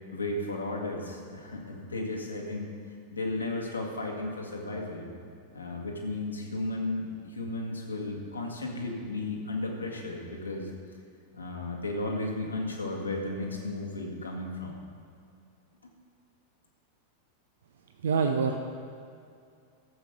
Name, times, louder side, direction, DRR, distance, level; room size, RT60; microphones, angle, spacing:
voice 1, 0.1-2.7 3.1-5.1 5.5-10.7 11.3-14.8 15.8-15.9, left 2 dB, 75° left, 0 dB, 1.8 m, -34 dB
voice 2, 18.0-18.6, right 5 dB, 65° right, 5 dB, 0.6 m, -25 dB
13.0 x 7.6 x 5.3 m, 2.4 s
figure-of-eight pair, 90°, 0 cm